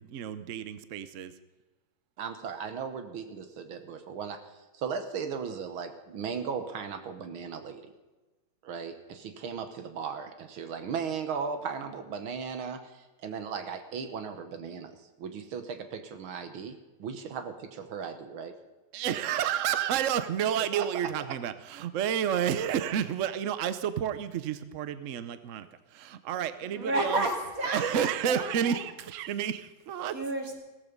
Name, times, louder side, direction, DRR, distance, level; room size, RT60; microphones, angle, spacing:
voice 1, 0.0-1.3 18.9-25.7 25.9-27.2 27.6-30.2, right 9 dB, 65° right, 13 dB, 0.7 m, -30 dB
voice 2, 2.2-4.4 4.7-7.9 8.6-18.6 20.7-21.1, right 6 dB, 80° right, 8 dB, 2.0 m, -37 dB
voice 3, 26.7-28.8 30.1-30.5, right 1 dB, 40° right, 3 dB, 2.9 m, -31 dB
16.0 x 14.5 x 5.3 m, 1.1 s
omnidirectional pair, 2.2 m